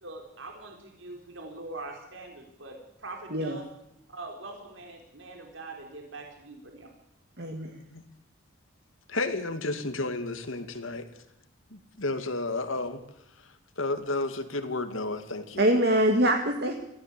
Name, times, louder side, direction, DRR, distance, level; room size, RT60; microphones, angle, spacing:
voice 1, 0.0-3.7 4.1-6.9, right 2 dB, 65° right, 2 dB, 4.1 m, -43 dB
voice 2, 7.4-7.7 15.6-16.7, right 1 dB, 50° right, 4 dB, 2.1 m, -24 dB
voice 3, 9.1-11.1 11.7-13.0 13.8-15.6, left 2 dB, 75° left, 8 dB, 2.4 m, -32 dB
23.5 x 16.0 x 8.5 m, 0.83 s
head